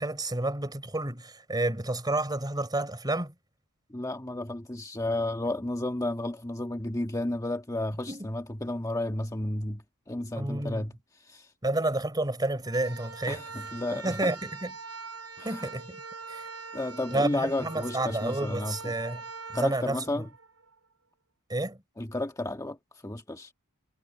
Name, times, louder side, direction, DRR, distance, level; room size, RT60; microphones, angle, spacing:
voice 1, 0.0-3.3 8.1-8.3 10.4-10.9 11.6-13.4 13.9-14.7 15.4-16.0 16.3-16.5 17.1-19.2 19.5-20.2 21.5-21.8, right 2 dB, 20° right, 4.0 m, -30 dB
voice 2, 3.9-10.9 11.2-11.5 13.3-14.3 15.4-15.7 16.7-18.8 19.5-20.3 22.0-22.8 23.0-23.5, left 1 dB, 15° left, 1.5 m, -32 dB
sound 1, 12.6-20.8, right 4 dB, 85° right, 3.3 m, -43 dB
head